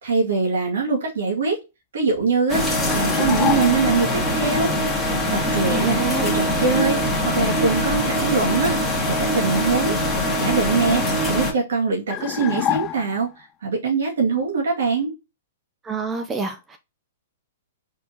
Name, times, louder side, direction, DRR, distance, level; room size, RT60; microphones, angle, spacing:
voice 1, 0.0-1.6 1.9-4.7 5.3-8.9 9.2-10.0 10.4-13.3 13.6-15.1, right 4 dB, 75° right, 2.2 m, -23 dB
sound 1, 2.5-11.5, equal, 5° left, 1.8 m, -22 dB
sound 2, 2.9-4.1 12.1-13.4, left 11 dB, 30° left, 0.3 m, -27 dB
voice 2, 5.7-6.3 15.8-16.8, right 4 dB, 15° right, 0.6 m, -28 dB
4.4 x 4.2 x 2.9 m
hypercardioid pair, 120°, 0 cm